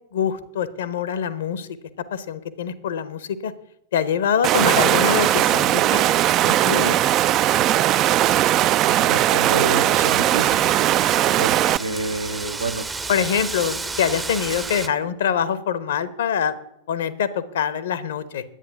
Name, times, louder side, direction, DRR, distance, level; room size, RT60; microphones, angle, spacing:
voice 1, 0.1-1.7 2.1-3.5 3.9-6.1 6.4-7.0 13.1-16.5 16.9-18.4, left 8 dB, 60° left, 15 dB, 0.9 m, -24 dB
Water, 4.4-11.8, right 13 dB, 35° right, 0.4 m, -19 dB
voice 2, 8.9-10.6 11.4-12.8, right 3 dB, 75° right, 8 dB, 0.8 m, -28 dB
Wind, 9.9-14.9, right 3 dB, 15° right, 0.7 m, -32 dB
10.0 x 8.7 x 6.9 m, 0.81 s
figure-of-eight pair, 90°, 0 cm